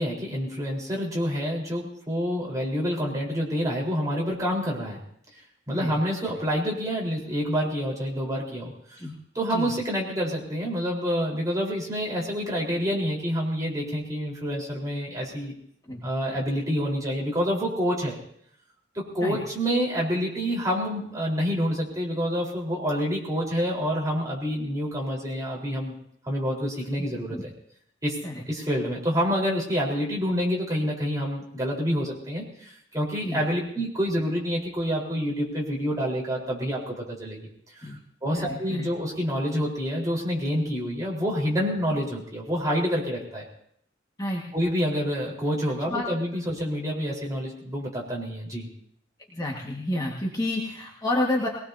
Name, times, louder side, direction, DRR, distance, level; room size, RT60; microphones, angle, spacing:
voice 1, 0.0-5.0 5.7-8.7 9.3-15.5 16.0-18.2 18.9-25.9 26.2-27.5 28.0-28.2 28.5-37.5 37.8-37.9 38.2-43.5 44.5-48.7, equal, 20° right, -4 dB, 4.2 m, -27 dB
voice 2, 38.3-38.9 44.2-44.4 45.9-46.1 49.3-51.5, left 1 dB, 20° left, -3 dB, 1.7 m, -29 dB
21.5 x 19.0 x 2.8 m, 0.69 s
head